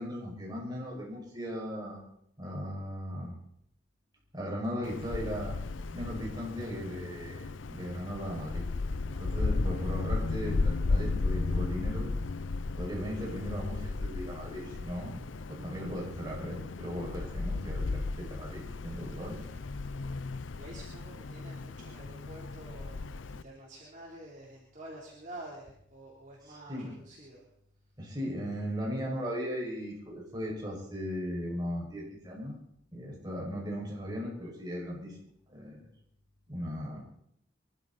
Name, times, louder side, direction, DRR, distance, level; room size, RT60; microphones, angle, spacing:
voice 1, 0.0-2.0 2.4-3.3 4.3-5.6 5.9-8.7 9.1-12.1 12.7-15.2 15.5-19.5 26.7-26.9 28.0-32.6 32.9-35.1 35.5-35.8 36.5-37.0, equal, 20° right, -3 dB, 6.0 m, -37 dB
Wind, 4.8-23.4, left 3 dB, 80° left, 0.6 m, -35 dB
voice 2, 20.6-27.4, right 1 dB, 40° right, -4 dB, 3.5 m, -48 dB
26.0 x 13.0 x 4.2 m, 0.72 s
head